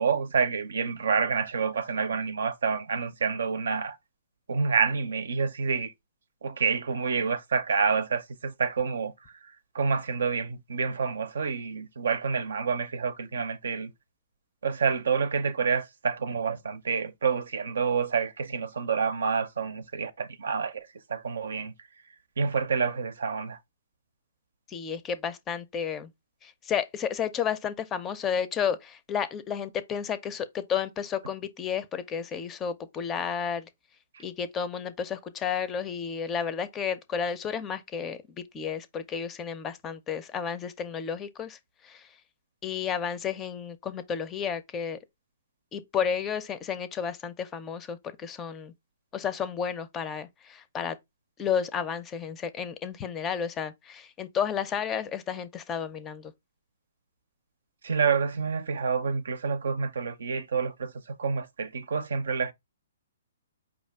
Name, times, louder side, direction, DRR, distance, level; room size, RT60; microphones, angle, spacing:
voice 1, 0.0-4.0 4.5-5.9 6.4-9.1 9.7-13.9 14.6-21.7 22.4-23.6 57.8-60.9 61.2-62.5, right 5 dB, 70° right, 0.6 m, -28 dB
voice 2, 24.7-26.1 26.4-33.7 34.2-42.1 42.6-45.0 45.7-48.7 49.1-51.0 51.4-56.3, left 7 dB, 20° left, 0.5 m, -32 dB
5.0 x 2.4 x 3.4 m
hypercardioid pair, 130°, 0 cm